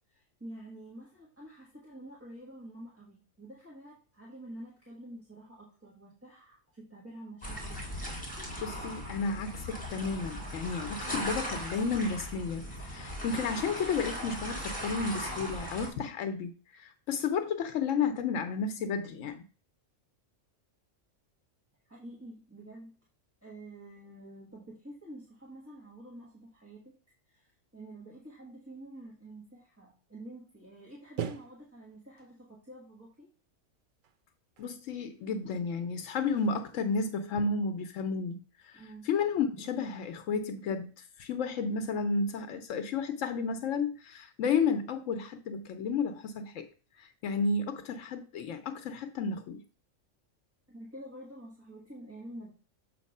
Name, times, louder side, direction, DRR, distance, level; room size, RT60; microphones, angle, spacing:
voice 1, 0.1-7.9 21.8-23.0 23.4-27.0 27.3-33.3 38.7-39.1 50.7-52.5, right 1 dB, 10° right, 1.4 m, -48 dB
sound 1, 7.4-15.9, equal, 5° left, 1.8 m, -38 dB
voice 2, 8.6-19.4 34.6-38.4 38.6-46.7 47.0-49.6, left 5 dB, 80° left, 1.0 m, -32 dB
sound 2, 30.5-30.6 31.2-32.4 34.0-34.2 34.6-35.7 36.0-37.5, right 8 dB, 55° right, 0.6 m, -44 dB
7.2 x 3.0 x 5.3 m
omnidirectional pair, 1.3 m